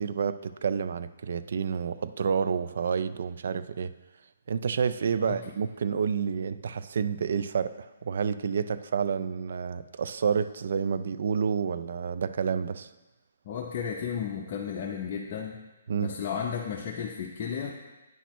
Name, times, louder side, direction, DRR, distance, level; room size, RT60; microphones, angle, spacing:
voice 1, 0.0-3.9 4.5-12.9 15.9-16.1, right 6 dB, 60° right, 12 dB, 0.3 m, -29 dB
voice 2, 13.5-15.6 16.0-17.7, left 7 dB, 35° left, -2 dB, 0.6 m, -33 dB
9.2 x 5.9 x 3.1 m, 1.1 s
hypercardioid pair, 160°, 0 cm